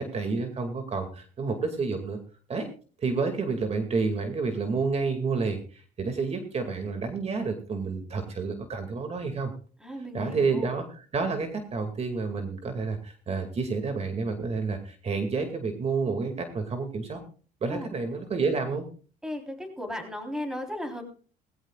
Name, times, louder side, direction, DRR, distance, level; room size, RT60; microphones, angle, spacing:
voice 1, 0.0-2.2 2.5-2.7 3.0-9.5 10.1-17.2 17.6-18.9, right 4 dB, 40° right, 6 dB, 2.3 m, -29 dB
voice 2, 9.8-10.7 17.7-17.9 19.2-21.0, left 1 dB, 5° right, 4 dB, 3.8 m, -35 dB
19.0 x 16.5 x 2.4 m, 0.39 s
cardioid pair, 110°, 17 cm